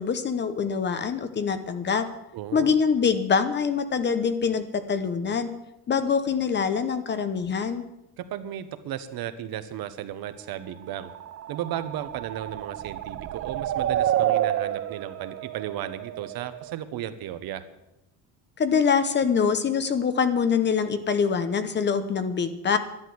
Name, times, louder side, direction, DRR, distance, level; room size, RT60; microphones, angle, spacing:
voice 1, 0.0-2.1 2.5-5.5 5.9-7.8 18.6-22.8, left 6 dB, 30° left, 11 dB, 0.9 m, -24 dB
voice 2, 2.3-2.7 8.2-11.1 11.5-17.6, right 11 dB, 70° right, 11 dB, 1.2 m, -35 dB
sound 1, 10.9-16.7, right 12 dB, 40° right, 0.5 m, -29 dB
11.5 x 11.5 x 7.9 m, 0.91 s
cardioid pair, 175°, 38 cm